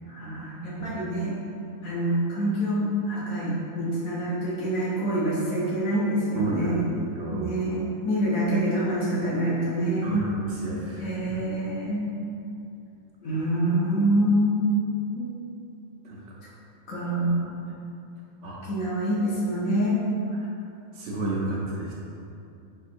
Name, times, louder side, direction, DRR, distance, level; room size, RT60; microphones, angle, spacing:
voice 1, 0.1-1.3 1.8-7.0 7.3-10.3 11.0-12.1 13.2-14.8 15.1-15.3 16.9-17.5 18.6-20.0, right 1 dB, 75° left, -8 dB, 1.2 m, -26 dB
voice 2, 6.4-6.7 7.1-7.4 10.0-11.0 16.1-16.2 18.4-18.6 21.0-21.9, right 2 dB, 65° right, -5 dB, 0.9 m, -31 dB
5.7 x 2.8 x 2.5 m, 2.6 s
omnidirectional pair, 1.5 m